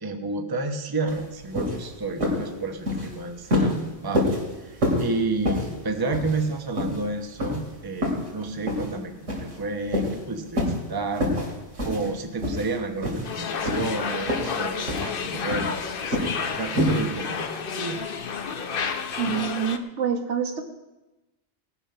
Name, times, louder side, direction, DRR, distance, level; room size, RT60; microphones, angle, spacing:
voice 1, 0.0-4.3 4.6-11.3 11.8-18.0, right 3 dB, 20° right, 5 dB, 0.9 m, -31 dB
sound 1, 1.1-1.2 1.5-1.8 2.2-2.5 2.8-3.1 3.5-3.8 4.1-4.4 4.8-5.1 5.4-5.7 6.1-6.5 6.8-7.0 7.4-7.6 8.0-8.3 8.7-8.9 9.3-9.6 9.9-10.2 10.5-10.8 11.2-11.5 11.8-12.1 12.4-12.7 13.0-13.3 13.6-14.0 14.3-14.6 14.9-15.1 15.5-15.8 16.1-16.4 16.8-17.0, left 1 dB, 85° right, 3.1 m, -26 dB
sound 2, 13.2-19.8, left 6 dB, 50° left, 0.9 m, -31 dB
voice 2, 19.2-20.6, right 7 dB, 70° right, 3 dB, 1.6 m, -27 dB
19.0 x 7.2 x 5.7 m, 1.0 s
omnidirectional pair, 1.2 m